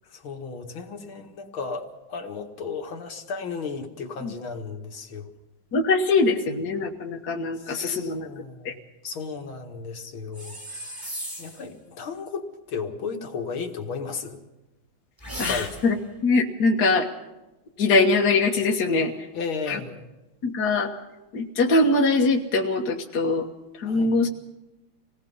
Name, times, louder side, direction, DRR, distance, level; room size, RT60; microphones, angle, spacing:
voice 1, 0.1-5.3 7.6-11.1 11.4-14.4 15.5-15.7 19.3-20.1 23.9-24.2, left 5 dB, 75° left, 4 dB, 2.6 m, -34 dB
voice 2, 5.7-8.3 8.6-8.7 15.4-16.0 16.2-17.1 17.8-19.3 19.7-19.8 20.4-20.9 21.3-23.5 23.8-24.3, left 3 dB, 50° left, 0 dB, 1.9 m, -22 dB
sound 1, 10.3-11.7 15.2-16.0, equal, 10° right, 3.0 m, -36 dB
27.0 x 18.5 x 5.6 m, 1.0 s
omnidirectional pair, 2.3 m